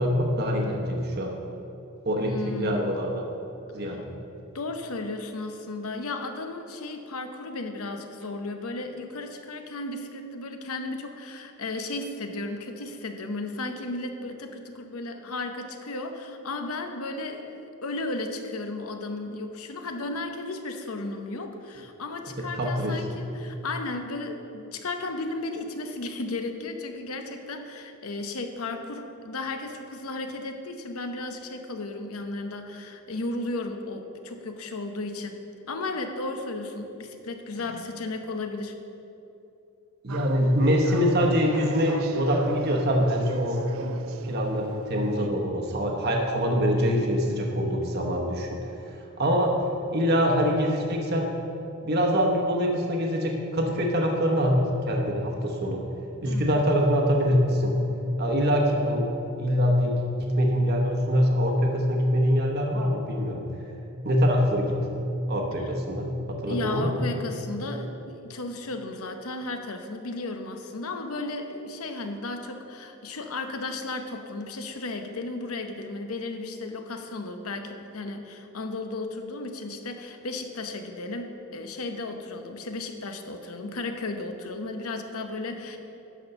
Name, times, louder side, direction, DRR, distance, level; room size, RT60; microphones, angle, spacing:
voice 1, 0.0-1.3 2.1-3.2 3.7-4.1 22.4-23.0 40.0-48.5 49.2-49.6 49.9-51.3 51.8-55.9 56.2-57.7 58.2-59.1 59.4-63.4 64.0-64.7 65.3-67.0, equal, 45° right, 0 dB, 1.0 m, -24 dB
voice 2, 2.3-2.9 3.8-4.0 4.5-35.4 35.7-38.7 56.2-56.6 66.5-85.8, left 2 dB, 80° left, 6 dB, 0.8 m, -34 dB
sound 1, 40.1-45.3, right 4 dB, 70° right, 0.4 m, -37 dB
11.0 x 4.4 x 6.8 m, 2.9 s
head